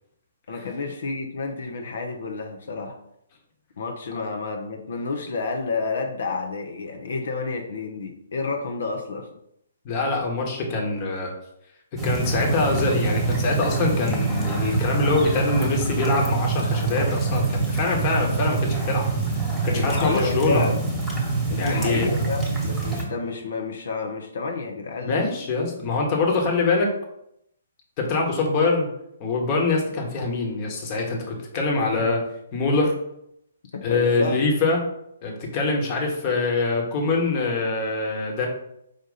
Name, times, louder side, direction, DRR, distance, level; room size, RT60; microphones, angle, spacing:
voice 1, 0.5-3.0 3.8-9.3 19.7-20.8 21.5-25.2 33.7-34.4, left 4 dB, 60° left, 4 dB, 0.7 m, -30 dB
voice 2, 9.8-11.3 12.0-19.1 19.6-20.7 21.6-22.1 25.0-26.9 28.0-28.9 29.2-32.2 32.5-32.9 33.8-34.8 35.2-38.5, left 3 dB, 35° left, 0 dB, 1.3 m, -24 dB
sound 1, 12.0-23.0, right 3 dB, 5° right, 1.4 m, -25 dB
5.1 x 2.5 x 4.0 m, 0.76 s
figure-of-eight pair, 130°, 0 cm